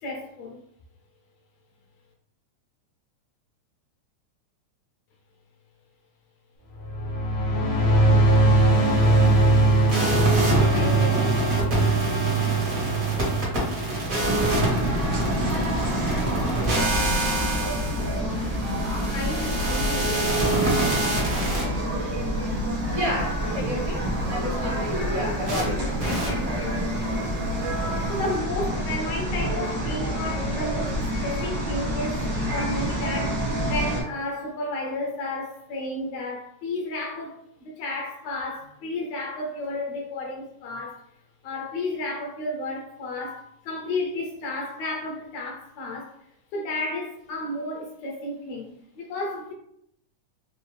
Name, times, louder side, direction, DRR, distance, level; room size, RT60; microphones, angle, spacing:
voice 1, 0.0-0.6 10.7-11.4 19.1-20.2 24.7-25.4 25.7-27.7 28.1-32.2 32.5-41.0 41.4-46.1 46.5-49.5, left 2 dB, 70° left, 1.6 m, -32 dB
sound 1, 6.7-13.3, right 1 dB, 55° left, 1.0 m, -21 dB
sound 2, 9.9-21.6 25.5-25.6 26.0-26.3, right 2 dB, 45° right, 1.1 m, -25 dB
sound 3, 14.2-34.0, equal, 85° right, 0.7 m, -28 dB
voice 2, 22.9-26.2 27.5-28.0, left 1 dB, 70° right, 2.2 m, -32 dB
4.7 x 2.4 x 3.2 m
omnidirectional pair, 3.4 m